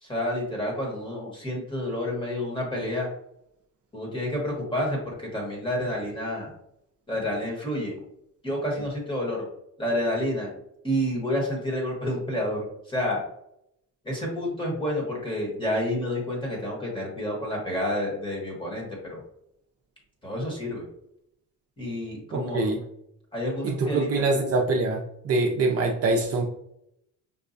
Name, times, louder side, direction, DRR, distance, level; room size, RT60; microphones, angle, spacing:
voice 1, 0.0-3.1 3.9-6.5 7.1-7.9 8.4-9.5 9.8-10.5 10.8-13.2 14.0-19.2 20.2-20.8 21.8-22.7 23.3-24.4, left 1 dB, 15° left, -2 dB, 1.2 m, -29 dB
voice 2, 22.3-22.8 23.6-25.0 25.2-26.4, right 3 dB, 45° right, 0 dB, 0.5 m, -24 dB
5.3 x 2.2 x 2.6 m, 0.78 s
cardioid pair, 140°, 35 cm